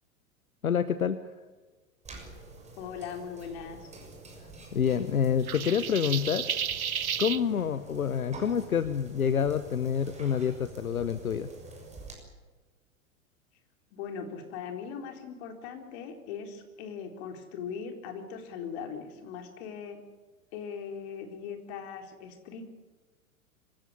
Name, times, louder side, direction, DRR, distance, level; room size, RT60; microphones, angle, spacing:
voice 1, 0.6-1.2 4.7-6.5 7.2-11.5, left 7 dB, 80° left, 13 dB, 1.0 m, -27 dB
sound 1, 2.0-12.1, right 2 dB, 15° right, 6.7 m, -47 dB
voice 2, 2.7-3.9 13.9-20.0 20.5-22.7, left 6 dB, 50° left, 4 dB, 4.1 m, -40 dB
sound 2, 5.5-7.4, right 8 dB, 85° right, 0.7 m, -32 dB
25.5 x 15.5 x 9.8 m, 1.3 s
figure-of-eight pair, 95°, 42 cm